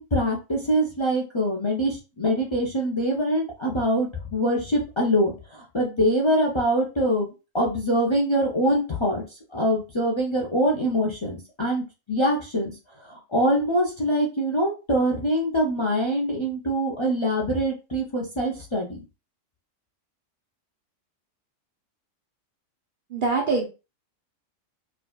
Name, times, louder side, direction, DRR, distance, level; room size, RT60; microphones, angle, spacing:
voice 1, 0.0-9.2 9.5-12.7 13.0-19.0, equal, 30° left, -1 dB, 0.5 m, -24 dB
voice 2, 23.1-23.7, right 3 dB, 50° right, 2 dB, 0.7 m, -23 dB
4.9 x 2.3 x 2.2 m, 0.30 s
omnidirectional pair, 1.4 m